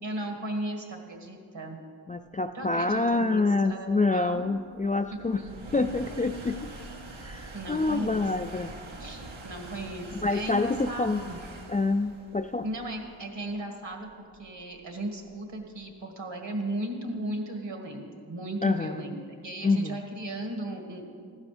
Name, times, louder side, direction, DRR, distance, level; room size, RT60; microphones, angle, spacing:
voice 1, 0.0-1.8 2.5-4.5 5.3-5.6 7.5-8.5 9.0-11.4 12.6-21.0, right 1 dB, 65° right, 2 dB, 2.0 m, -36 dB
voice 2, 2.1-5.4 5.7-6.7 7.2-8.7 10.2-11.2 11.7-12.6 18.6-19.0 19.6-20.0, left 3 dB, 20° left, 7 dB, 0.3 m, -27 dB
sound 1, 2.9-15.8, right 2 dB, 80° right, 1.5 m, -45 dB
15.0 x 11.0 x 3.3 m, 2.2 s
cardioid pair, 45°, 47 cm